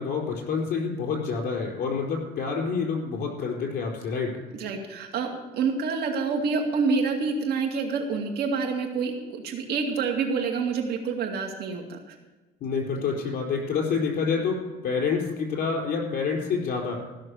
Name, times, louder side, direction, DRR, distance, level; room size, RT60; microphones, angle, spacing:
voice 1, 0.0-4.4 12.6-17.0, left 5 dB, 65° left, 0 dB, 4.4 m, -28 dB
voice 2, 4.5-12.1, right 5 dB, 70° right, 3 dB, 2.4 m, -27 dB
15.5 x 6.6 x 8.6 m, 1.2 s
cardioid pair, 110°, 17 cm